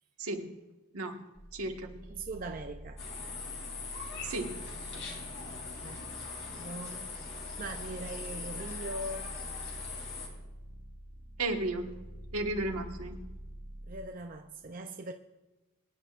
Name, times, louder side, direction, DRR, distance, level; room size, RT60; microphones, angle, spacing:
voice 1, 0.2-0.5 0.9-1.2 1.5-2.0 4.2-4.6 11.4-12.0 12.3-13.2, right 2 dB, 80° right, 1.5 m, -34 dB
sound 1, 1.4-14.1, equal, 10° left, 0.9 m, -47 dB
voice 2, 2.1-3.0 5.8-6.1 6.4-9.4 13.9-15.1, right 2 dB, 40° right, 0.5 m, -41 dB
sound 2, 3.0-10.3, left 4 dB, 60° left, 2.9 m, -41 dB
24.5 x 10.5 x 2.5 m
head